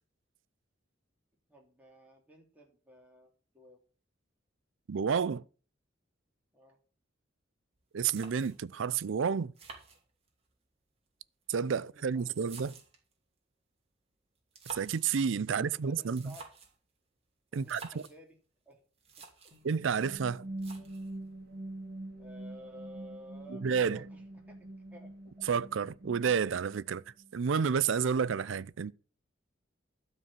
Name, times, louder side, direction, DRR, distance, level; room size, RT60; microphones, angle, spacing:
voice 1, 1.5-3.8 6.5-6.8 11.8-12.6 15.6-16.5 17.5-18.4 18.6-18.8 19.2-19.5 22.2-24.6 24.9-25.5, equal, 10° right, 3.1 m, -54 dB
voice 2, 4.9-5.4 7.9-9.5 11.5-12.7 14.7-16.3 17.5-17.8 19.6-20.4 23.6-24.0 25.5-27.0 27.3-28.9, right 6 dB, 85° right, 0.5 m, -30 dB
sound 1, 7.7-7.8 8.1-8.8 9.5-10.5 11.4-13.1 14.4-15.1 16.0-16.8 17.5-18.2 18.7-18.8 19.0-19.6 20.6-21.2, right 4 dB, 30° right, 2.5 m, -50 dB
sound 2, 19.5-27.3, right 1 dB, 55° right, 2.1 m, -45 dB
12.5 x 4.6 x 7.4 m
head